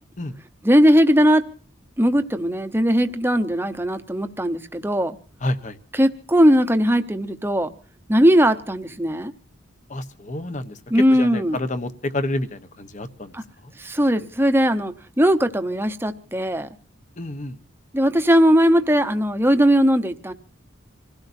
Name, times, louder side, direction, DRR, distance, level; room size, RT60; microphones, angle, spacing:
voice 1, 0.6-1.4 2.0-5.2 6.0-7.7 8.1-9.3 10.9-11.6 13.3-13.4 13.8-16.7 17.9-20.3, equal, 10° right, 9 dB, 0.9 m, -19 dB
voice 2, 5.4-5.8 9.9-13.7 17.2-17.6, left 1 dB, 35° left, 12 dB, 1.0 m, -29 dB
26.5 x 16.5 x 2.7 m, 0.41 s
head